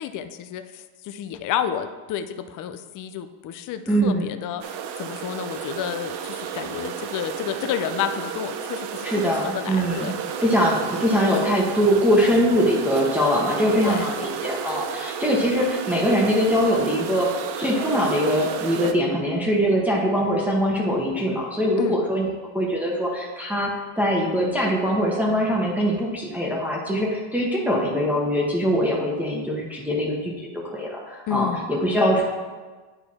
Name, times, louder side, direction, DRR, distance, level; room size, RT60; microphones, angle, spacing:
voice 1, 0.0-4.7 5.0-10.1 13.7-14.1 21.8-22.0 31.3-31.7, left 9 dB, 45° left, 9 dB, 0.5 m, -30 dB
voice 2, 3.9-4.3 9.0-10.1 10.4-22.3 22.5-32.2, equal, 5° right, -4 dB, 1.0 m, -22 dB
sound 1, 4.6-18.9, right 8 dB, 55° right, 0.7 m, -32 dB
9.7 x 4.5 x 4.2 m, 1.4 s
cardioid pair, 135°, 47 cm